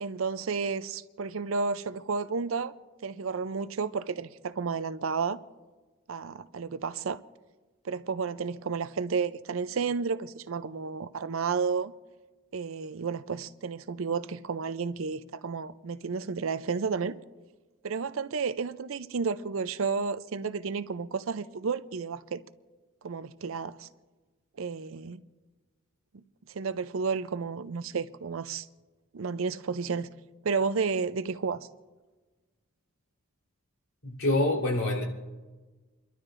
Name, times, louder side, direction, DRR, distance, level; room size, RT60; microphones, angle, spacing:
voice 1, 0.0-2.7 3.0-5.4 6.1-7.2 7.8-11.9 12.5-17.2 17.8-22.4 23.0-23.9 24.6-25.2 26.1-26.2 26.5-28.7 29.1-30.1 30.4-31.7, right 5 dB, 75° right, 0.5 m, -32 dB
voice 2, 34.0-35.0, left 2 dB, 85° left, 3.7 m, -26 dB
29.5 x 12.5 x 2.6 m
head